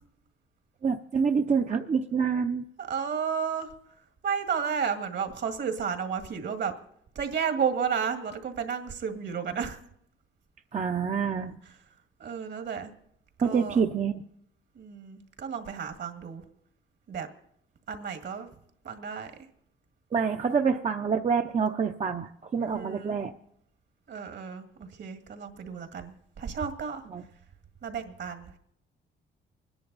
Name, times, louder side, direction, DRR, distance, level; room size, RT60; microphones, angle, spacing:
voice 1, 0.8-2.6 10.7-11.6 13.4-14.2 20.1-23.3 27.1-27.2, right 6 dB, 35° right, 4 dB, 0.7 m, -27 dB
voice 2, 2.8-3.7 4.2-6.7 7.2-9.8 12.2-12.9 13.4-13.8 14.8-16.4 17.1-17.3 17.9-18.5 18.8-19.3 22.6-23.2 24.1-27.0 27.8-28.5, right 6 dB, 60° right, 7 dB, 1.9 m, -32 dB
24.5 x 10.5 x 4.0 m, 0.73 s
cardioid pair, 90°, 20 cm